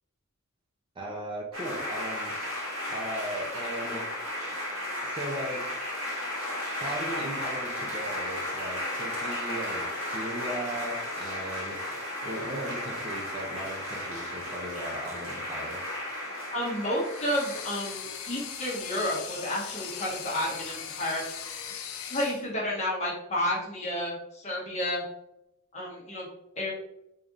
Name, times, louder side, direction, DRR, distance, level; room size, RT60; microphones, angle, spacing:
voice 1, 1.0-2.3 2.9-4.1 5.0-5.7 6.8-11.8 12.2-15.9, right 1 dB, 20° right, -2 dB, 0.5 m, -37 dB
sound 1, 1.5-18.0, left 1 dB, 70° right, 1.4 m, -34 dB
voice 2, 16.5-21.2 22.1-25.0 25.7-26.3 26.6-26.7, left 1 dB, 30° left, -5 dB, 1.2 m, -31 dB
sound 2, 16.9-22.5, left 7 dB, 75° left, 0.5 m, -39 dB
3.9 x 3.3 x 2.4 m, 0.84 s
head